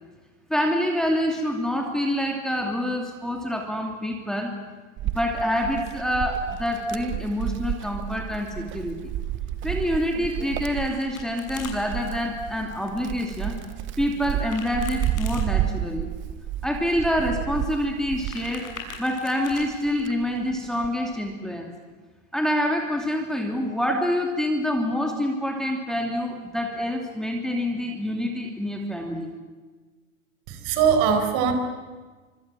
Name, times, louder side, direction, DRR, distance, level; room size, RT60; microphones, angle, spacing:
voice 1, 0.5-4.5 5.1-8.9 9.6-13.6 14.0-16.1 16.6-18.7 19.0-21.7 22.3-29.3, equal, ahead, 1 dB, 2.7 m, -26 dB
Wind, 5.0-19.1 19.5-21.0, right 12 dB, 30° right, 1.1 m, -31 dB
Domestic sounds home sounds, 10.3-11.7 14.3-15.5 18.0-19.6, left 6 dB, 80° left, 6.8 m, -41 dB
voice 2, 30.5-31.5, right 7 dB, 45° right, 7 dB, 4.7 m, -21 dB
25.5 x 25.0 x 7.6 m, 1.4 s
hypercardioid pair, 130°, 40 cm